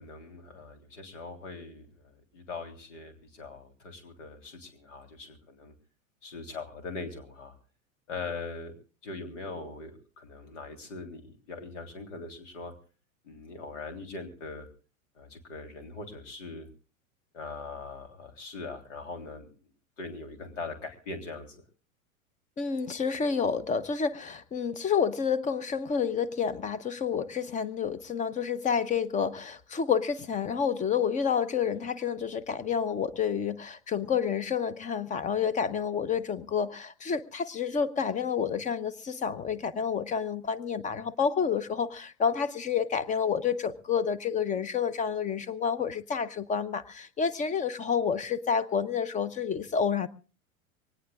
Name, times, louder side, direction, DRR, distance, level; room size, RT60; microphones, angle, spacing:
voice 1, 0.0-5.7 6.2-7.6 8.1-8.7 9.0-12.7 13.2-14.7 15.2-16.7 17.3-19.5 20.0-21.6, left 3 dB, 60° left, 5 dB, 3.5 m, -41 dB
voice 2, 22.6-50.1, left 6 dB, 20° left, 17 dB, 1.0 m, -29 dB
24.0 x 19.0 x 2.4 m, 0.37 s
figure-of-eight pair, 90°, 41 cm